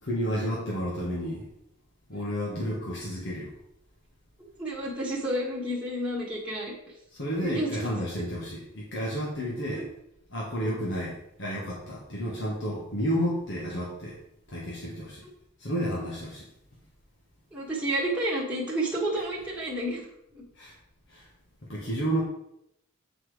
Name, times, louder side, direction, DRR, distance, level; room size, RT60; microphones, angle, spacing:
voice 1, 0.0-1.5 2.1-3.5 7.1-9.9 10.3-14.2 14.5-15.2 15.6-16.5 20.5-20.8 21.1-21.3 21.7-22.2, equal, 55° left, -5 dB, 1.5 m, -31 dB
voice 2, 4.4-6.9 7.4-7.8 9.8-9.9 17.5-20.1 20.3-20.4, right 1 dB, 5° right, -6 dB, 1.5 m, -30 dB
8.1 x 4.3 x 4.9 m, 0.81 s
head